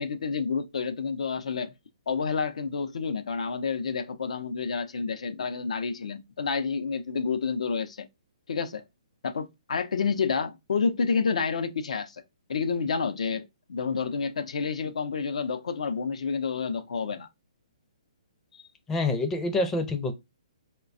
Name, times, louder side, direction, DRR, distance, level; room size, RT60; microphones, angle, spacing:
voice 1, 0.0-1.7 2.1-8.1 8.5-8.8 9.2-12.2 12.5-17.3, left 5 dB, 75° left, 0.5 m, -29 dB
voice 2, 18.9-20.1, left 2 dB, 10° left, 0.5 m, -26 dB
4.0 x 2.2 x 2.5 m
hypercardioid pair, 150°, 4 cm